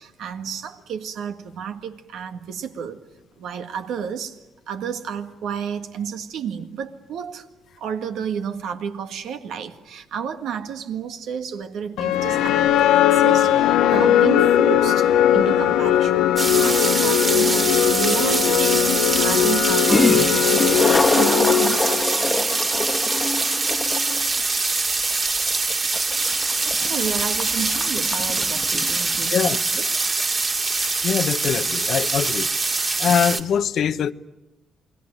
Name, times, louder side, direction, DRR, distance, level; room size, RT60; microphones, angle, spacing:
voice 1, 0.0-3.0 3.4-7.5 7.8-22.4 26.6-29.9, right 7 dB, 80° right, 1.8 m, -32 dB
sound 1, 12.0-22.2, left 10 dB, 85° left, 0.9 m, -19 dB
sound 2, 16.4-33.4, right 3 dB, 35° right, 2.3 m, -23 dB
Toilet flush, 17.8-17.9 19.6-19.7 19.9-29.3, left 3 dB, 20° left, 1.3 m, -25 dB
voice 2, 29.3-29.6 31.0-32.5 33.0-34.1, left 8 dB, 65° left, 0.9 m, -22 dB
28.5 x 21.0 x 9.0 m
cardioid pair, 90°, 0 cm